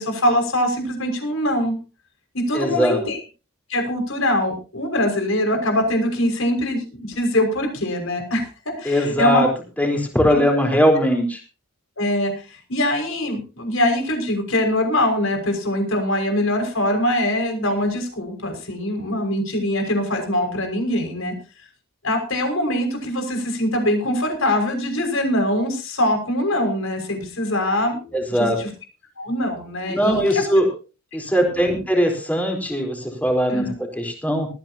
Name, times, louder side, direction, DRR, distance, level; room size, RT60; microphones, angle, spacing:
voice 1, 0.0-1.8 2.3-3.2 3.7-9.4 10.3-10.4 12.0-21.3 22.0-28.0 28.3-28.7 29.2-30.2 31.3-31.8 33.5-33.7, left 1 dB, 60° left, 4 dB, 6.0 m, -23 dB
voice 2, 2.5-3.0 8.8-9.5 9.8-11.4 28.1-28.6 29.9-30.7 31.1-34.5, equal, 5° left, 2 dB, 4.2 m, -20 dB
19.5 x 15.0 x 2.9 m, 0.33 s
head